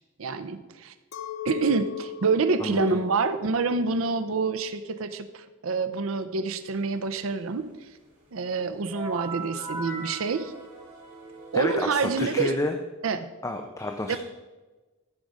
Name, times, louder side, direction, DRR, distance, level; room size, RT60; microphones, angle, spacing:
voice 1, 0.2-0.9 1.4-7.9 8.3-10.5 11.5-12.5 13.0-13.3 14.1-14.2, right 4 dB, 85° right, 11 dB, 0.6 m, -27 dB
Chink clink, 1.1-6.6, left 7 dB, 80° left, 0.6 m, -39 dB
voice 2, 2.6-3.0 11.5-12.7 13.4-14.2, left 1 dB, 15° left, 4 dB, 0.6 m, -30 dB
sound 1, 8.9-12.5, right 3 dB, 40° right, 3.3 m, -39 dB
13.5 x 5.3 x 4.8 m, 1.2 s
head